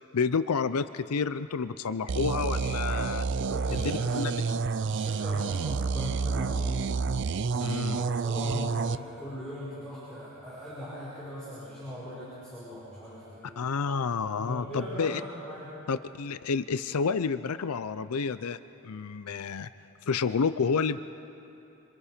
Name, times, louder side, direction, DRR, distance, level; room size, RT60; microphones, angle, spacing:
voice 1, 0.1-3.3 3.7-3.8 4.1-4.3 7.6-8.1 13.6-15.2 15.9-19.7 20.1-21.0, left 5 dB, 85° left, 13 dB, 0.5 m, -29 dB
sound 1, 2.1-9.0, right 4 dB, 55° right, 0.4 m, -29 dB
voice 2, 3.3-4.6 4.9-7.0 7.9-13.6 14.4-15.7, equal, 5° left, -9 dB, 5.2 m, -40 dB
27.0 x 26.0 x 5.1 m, 2.8 s
head